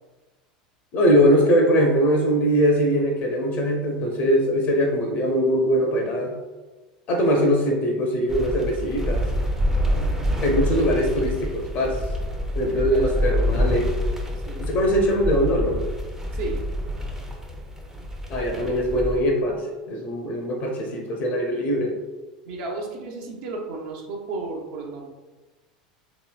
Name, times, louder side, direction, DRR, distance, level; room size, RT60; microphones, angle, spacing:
voice 1, 0.9-6.3 7.1-9.3 10.4-12.0 12.6-13.9 14.6-15.8 18.3-19.6 19.9-22.0, equal, 45° left, 1 dB, 0.6 m, -21 dB
sound 1, 8.3-19.2, equal, 10° right, 0.5 m, -27 dB
voice 2, 9.8-10.9 12.6-13.9 14.3-14.7 16.3-16.7 22.4-25.1, right 3 dB, 55° right, 0 dB, 0.6 m, -35 dB
3.1 x 2.9 x 2.2 m, 1.2 s
figure-of-eight pair, 80°, 4 cm